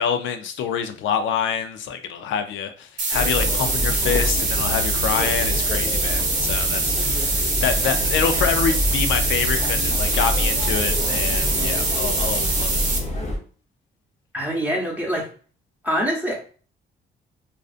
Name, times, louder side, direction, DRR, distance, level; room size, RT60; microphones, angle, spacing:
voice 1, 0.0-12.8, left 7 dB, 75° left, 9 dB, 0.5 m, -26 dB
sound 1, 3.0-13.0, right 3 dB, 40° right, 0.8 m, -24 dB
sound 2, 3.1-13.4, left 1 dB, 35° left, 0.8 m, -26 dB
voice 2, 14.3-15.2 15.8-16.3, equal, 10° right, -3 dB, 0.9 m, -24 dB
2.5 x 2.4 x 2.4 m, 0.41 s
cardioid pair, 90°, 20 cm